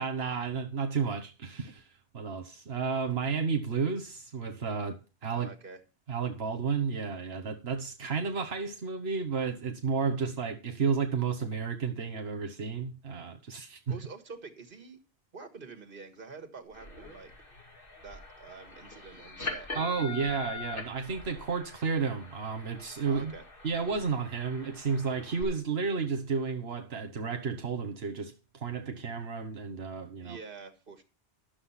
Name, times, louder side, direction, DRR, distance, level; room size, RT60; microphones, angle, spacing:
voice 1, 0.0-1.9 2.1-5.5 6.1-13.9 19.7-23.3 23.6-30.4, right 5 dB, 85° right, 1.4 m, -32 dB
voice 2, 5.3-5.8 13.9-15.0 15.3-17.3 18.0-20.1 23.1-23.4 30.2-31.0, right 4 dB, 60° right, 1.8 m, -47 dB
sound 1, 16.7-25.4, left 4 dB, 60° left, 2.6 m, -43 dB
12.0 x 6.5 x 5.7 m
omnidirectional pair, 1.0 m